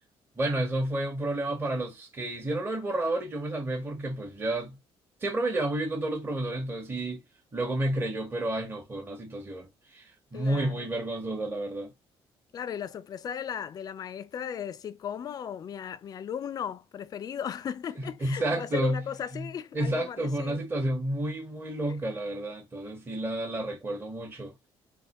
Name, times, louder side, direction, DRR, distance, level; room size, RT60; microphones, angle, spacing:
voice 1, 0.4-4.8 5.2-7.2 7.5-11.9 18.2-19.0 19.3-19.5 19.7-24.5, right 1 dB, 20° right, 1.1 m, -31 dB
voice 2, 10.3-10.9 12.5-20.6 21.9-22.0, left 8 dB, 40° left, 0.4 m, -36 dB
3.5 x 2.9 x 3.0 m
cardioid pair, 145°, 10 cm